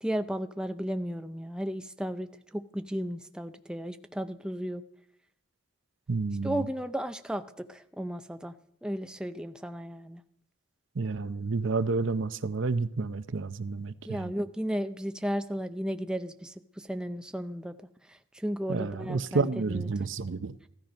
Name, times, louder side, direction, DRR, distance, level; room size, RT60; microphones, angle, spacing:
voice 1, 0.0-4.8 6.4-8.5 8.8-10.2 14.1-17.8 18.1-19.9, equal, 5° right, 0.5 m, -34 dB
voice 2, 6.1-6.7 11.0-14.3 18.7-20.6, right 4 dB, 65° right, 0.6 m, -30 dB
16.0 x 13.0 x 5.2 m
head